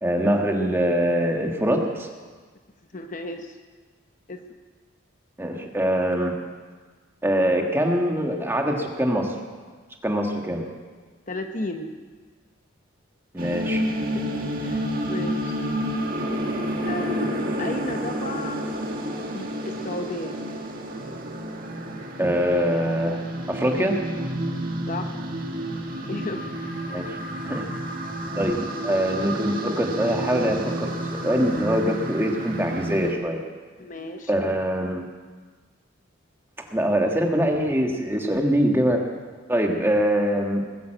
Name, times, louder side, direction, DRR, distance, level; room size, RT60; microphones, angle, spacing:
voice 1, 0.0-2.1 5.4-6.4 7.2-9.3 10.0-10.7 13.3-13.8 22.2-23.2 23.5-24.0 26.9-27.2 27.4-27.7 28.3-33.4 34.3-35.0 36.7-39.0 39.5-40.6, equal, 10° right, 2 dB, 1.6 m, -23 dB
voice 2, 2.9-3.5 4.3-4.4 11.3-12.0 14.1-14.3 14.6-15.6 16.8-18.7 19.3-20.4 24.9-25.2 26.0-26.5 33.8-34.3, left 2 dB, 40° left, 5 dB, 0.9 m, -34 dB
sound 1, 13.4-33.1, equal, 45° right, 1.9 m, -30 dB
20.0 x 9.4 x 7.8 m, 1.4 s
head